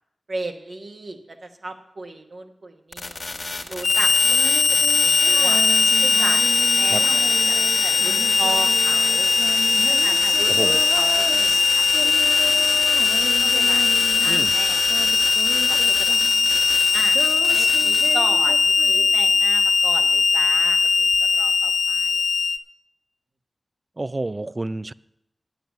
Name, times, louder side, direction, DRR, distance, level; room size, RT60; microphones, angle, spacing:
voice 1, 0.3-3.2 3.7-5.6 6.0-7.6 7.8-9.4 9.9-13.0 13.4-15.4 15.7-16.4 16.9-17.2 17.5-22.2, right 2 dB, 55° right, 3 dB, 1.1 m, -35 dB
sound 1, 2.9-18.1, left 2 dB, 40° left, 1.3 m, -31 dB
Harmonica, 3.8-22.6, left 4 dB, 85° left, 0.5 m, -19 dB
Female singing, 4.2-19.6 21.1-21.2, right 2 dB, 85° right, 1.0 m, -35 dB
voice 2, 10.5-10.8 14.3-14.5 24.0-24.9, right 2 dB, 30° right, 18 dB, 0.3 m, -29 dB
9.3 x 8.9 x 7.2 m, 0.83 s
wide cardioid pair, 75°, 0 cm